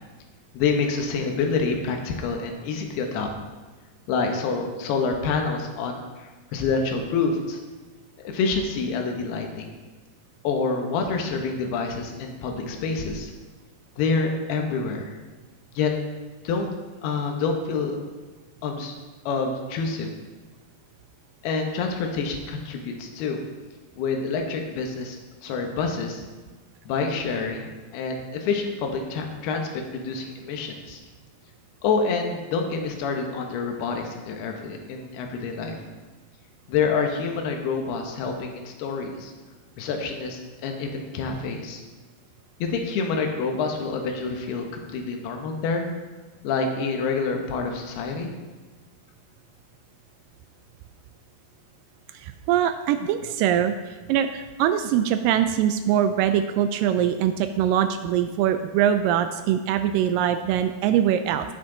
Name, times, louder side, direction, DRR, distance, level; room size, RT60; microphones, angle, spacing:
voice 1, 0.5-3.3 4.1-7.6 8.2-9.7 10.4-13.3 14.0-15.2 15.8-15.9 16.4-16.7 17.0-18.0 18.6-18.9 19.3-20.1 21.4-23.4 24.0-25.2 25.4-26.2 26.9-31.0 31.8-35.8 36.7-39.3 39.8-41.8 42.6-45.9 46.4-48.3, left 4 dB, 85° left, 3 dB, 3.1 m, -27 dB
voice 2, 52.1-61.5, right 10 dB, 90° right, 9 dB, 1.9 m, -23 dB
18.0 x 6.0 x 3.8 m, 1.3 s
omnidirectional pair, 4.4 m